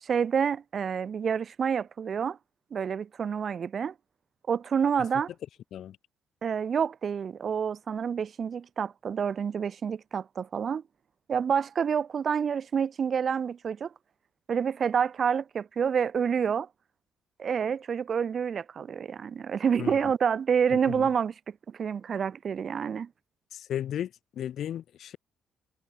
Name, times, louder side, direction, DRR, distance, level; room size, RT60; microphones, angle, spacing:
voice 1, 0.0-2.4 2.7-3.9 4.5-5.3 6.4-10.8 11.3-13.9 14.5-16.7 17.4-23.1, right 7 dB, 55° right, 0.4 m, -28 dB
voice 2, 19.8-20.1 20.7-21.1 23.5-25.2, left 10 dB, 70° left, 0.9 m, -35 dB
supercardioid pair, 60°, 0 cm